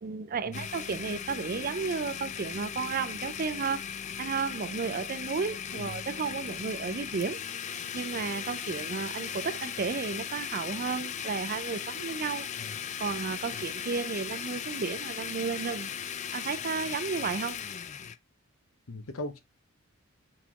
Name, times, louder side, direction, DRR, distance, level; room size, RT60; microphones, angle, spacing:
voice 1, 0.0-3.8 4.2-7.4 7.9-12.5 13.0-15.9 16.3-17.6, right 5 dB, 40° right, 0.4 m, -33 dB
Domestic sounds home sounds, 0.5-18.2, left 8 dB, 35° left, 0.3 m, -37 dB
voice 2, 18.9-19.4, left 2 dB, 85° left, 0.9 m, -38 dB
4.2 x 4.2 x 2.8 m
head